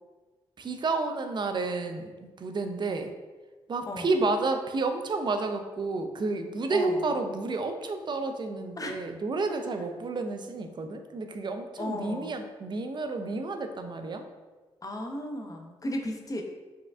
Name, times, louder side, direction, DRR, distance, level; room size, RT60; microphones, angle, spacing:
voice 1, 0.6-3.1 3.7-14.2, right 3 dB, 40° right, 6 dB, 0.4 m, -30 dB
voice 2, 6.7-7.1 8.8-9.0 11.8-12.4 14.8-16.4, left 1 dB, 30° left, 3 dB, 0.6 m, -35 dB
4.2 x 2.3 x 2.4 m, 1.3 s
hypercardioid pair, 40°, 12 cm